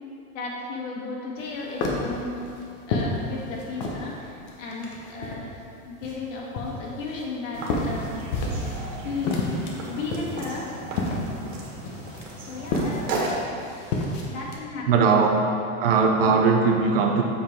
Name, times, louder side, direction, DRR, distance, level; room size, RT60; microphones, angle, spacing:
voice 1, 0.3-2.3 2.9-5.5 5.9-8.2 9.0-9.4 9.9-10.7 12.5-13.3 14.3-15.5, left 3 dB, 65° left, -2 dB, 1.7 m, -34 dB
sound 1, 1.4-4.1 4.5-5.6 6.0-8.9 9.1-14.5, left 2 dB, 30° left, 0.8 m, -30 dB
sound 2, 7.5-13.4, right 2 dB, 70° right, 1.8 m, -34 dB
voice 2, 14.9-15.4 15.8-17.2, right 5 dB, 45° right, 2 dB, 0.7 m, -19 dB
7.0 x 5.3 x 4.4 m, 2.5 s
supercardioid pair, 175°, 41 cm